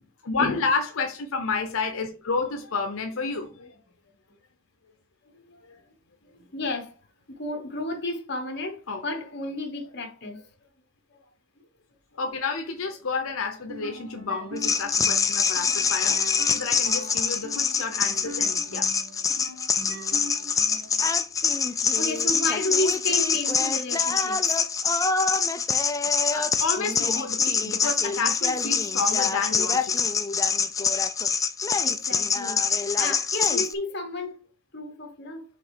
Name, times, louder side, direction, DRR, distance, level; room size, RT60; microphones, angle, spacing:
voice 1, 0.2-3.8 5.7-5.8 8.9-9.0 12.1-18.9 26.0-29.9, left 4 dB, 80° left, 0.8 m, -30 dB
voice 2, 5.2-5.6 6.2-6.9 7.3-10.4 11.1-11.2 21.6-24.4 31.8-34.4 34.7-35.4, left 2 dB, 55° left, 1.2 m, -32 dB
sound 1, 13.6-21.0, right 1 dB, 65° right, 1.7 m, -41 dB
sound 2, 14.6-33.7, left 5 dB, 15° left, 0.3 m, -25 dB
5.0 x 3.8 x 4.9 m
head